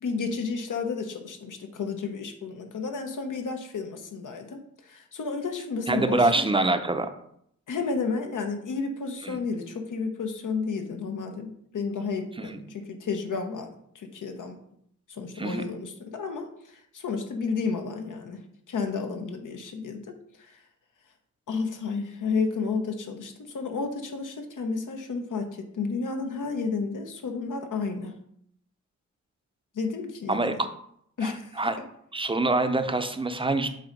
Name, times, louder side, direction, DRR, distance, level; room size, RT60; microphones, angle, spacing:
voice 1, 0.0-6.4 7.7-12.6 12.9-14.6 15.1-18.4 18.7-20.1 20.4-20.6 21.5-28.1 29.7-30.6 31.2-31.5, left 4 dB, 80° left, 5 dB, 0.9 m, -32 dB
voice 2, 5.9-7.1 9.2-9.4 12.4-12.6 15.4-15.7 30.3-30.7 31.2-31.8 32.1-33.7, right 2 dB, 15° right, 7 dB, 0.5 m, -25 dB
7.7 x 2.7 x 5.2 m, 0.70 s
wide cardioid pair, 120°, 30 cm